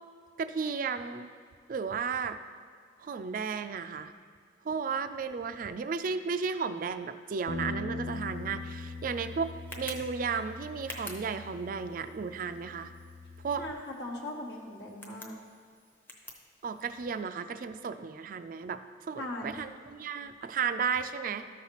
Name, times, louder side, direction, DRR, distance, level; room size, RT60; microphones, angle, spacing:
voice 1, 0.4-1.3 1.7-2.4 3.0-4.1 4.6-12.9 13.4-13.6 16.6-18.8 19.1-21.5, right 5 dB, 45° right, 10 dB, 0.3 m, -34 dB
Bass guitar, 7.5-13.7, left 3 dB, 85° left, 0.5 m, -41 dB
Tick, 8.0-17.2, left 1 dB, 10° left, 0.7 m, -51 dB
voice 2, 13.6-15.4 19.2-19.6, left 1 dB, 60° left, -1 dB, 1.1 m, -39 dB
13.0 x 5.6 x 2.9 m, 2.1 s
head